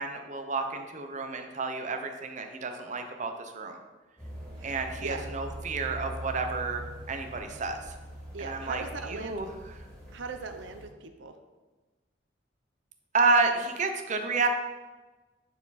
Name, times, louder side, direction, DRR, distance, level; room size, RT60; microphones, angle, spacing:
voice 1, 0.0-3.8 4.6-7.9 8.4-9.5 13.1-14.5, right 4 dB, 40° right, 5 dB, 0.7 m, -30 dB
sound 1, 4.2-10.8, equal, 5° left, 2.5 m, -42 dB
voice 2, 4.6-5.3 8.3-9.5 10.1-11.4, right 4 dB, 85° right, 7 dB, 0.6 m, -40 dB
9.3 x 4.5 x 4.1 m, 1.2 s
head